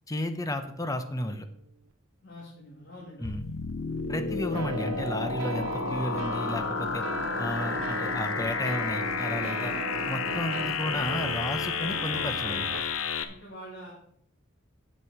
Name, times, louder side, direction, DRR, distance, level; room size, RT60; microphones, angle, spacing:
voice 1, 0.1-1.5 3.2-3.4 4.1-7.0 7.4-9.7 10.1-12.7, left 1 dB, 15° left, 8 dB, 0.8 m, -33 dB
sound 1, 0.7-1.9 4.5-12.8, right 4 dB, 80° right, 0.5 m, -38 dB
voice 2, 2.2-3.5 13.3-13.9, equal, 60° left, -5 dB, 2.6 m, -46 dB
sound 2, 3.2-13.2, left 5 dB, 85° left, 0.9 m, -31 dB
9.8 x 7.7 x 4.8 m, 0.68 s
head